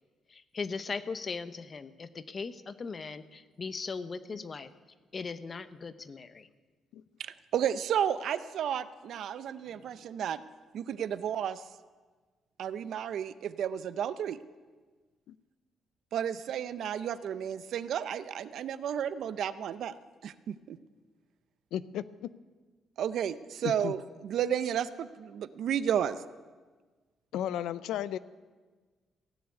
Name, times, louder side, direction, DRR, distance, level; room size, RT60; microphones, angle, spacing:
voice 1, 0.3-4.7 5.1-6.5 9.7-10.0, left 4 dB, 40° left, 12 dB, 0.8 m, -39 dB
voice 2, 7.2-10.4 10.7-11.6 12.6-14.4 16.1-19.9 20.2-20.8 23.0-26.2, right 9 dB, 70° right, 14 dB, 0.6 m, -32 dB
voice 3, 21.7-22.3 23.6-23.9 27.3-28.2, left 11 dB, 85° left, 15 dB, 0.5 m, -34 dB
16.5 x 7.0 x 9.6 m, 1.4 s
cardioid pair, 90°, 0 cm